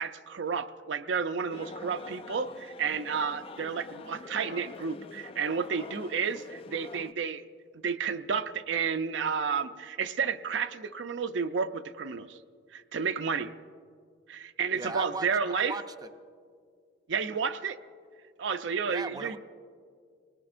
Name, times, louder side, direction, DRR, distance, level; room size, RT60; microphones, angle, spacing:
voice 1, 0.0-7.5 7.8-12.4 12.7-13.5 14.3-15.7 17.1-17.8 18.4-19.4, right 6 dB, 75° right, 8 dB, 0.5 m, -31 dB
sound 1, 1.5-7.1, left 3 dB, 30° left, 0.3 m, -45 dB
voice 2, 14.7-16.1 18.9-19.4, right 3 dB, 20° right, 7 dB, 0.5 m, -38 dB
27.0 x 19.5 x 2.6 m, 2.1 s
head